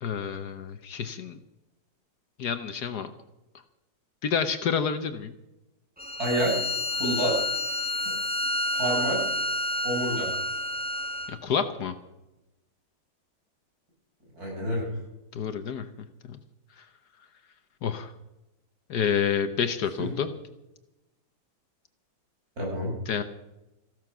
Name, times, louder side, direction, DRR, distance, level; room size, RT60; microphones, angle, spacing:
voice 1, 0.0-1.4 2.4-3.1 4.2-5.3 11.3-11.9 15.3-15.8 17.8-18.1 18.9-20.3 23.1-23.2, left 7 dB, 65° left, 9 dB, 1.3 m, -28 dB
Bowed string instrument, 6.0-11.4, left 1 dB, 10° right, 0.6 m, -29 dB
voice 2, 6.2-6.7 6.9-7.3 8.0-8.1 8.7-9.2 9.8-10.3 14.3-14.9 20.0-20.1 22.6-22.9, right 1 dB, 50° right, -2 dB, 6.8 m, -28 dB
15.0 x 12.5 x 6.1 m, 0.94 s
omnidirectional pair, 2.0 m